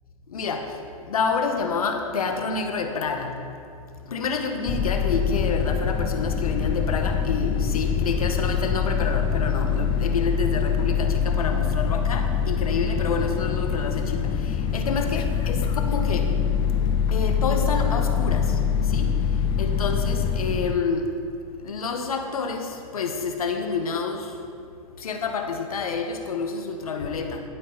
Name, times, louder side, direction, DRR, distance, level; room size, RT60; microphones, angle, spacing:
voice 1, 0.3-0.7 1.1-3.3 4.1-16.4 17.1-19.2 19.6-21.1 21.6-24.3 25.0-27.4, left 4 dB, 80° left, 4 dB, 1.5 m, -28 dB
sound 1, 4.7-20.7, left 7 dB, 25° left, 0.6 m, -24 dB
12.0 x 9.9 x 4.2 m, 2.4 s
hypercardioid pair, 125°, 18 cm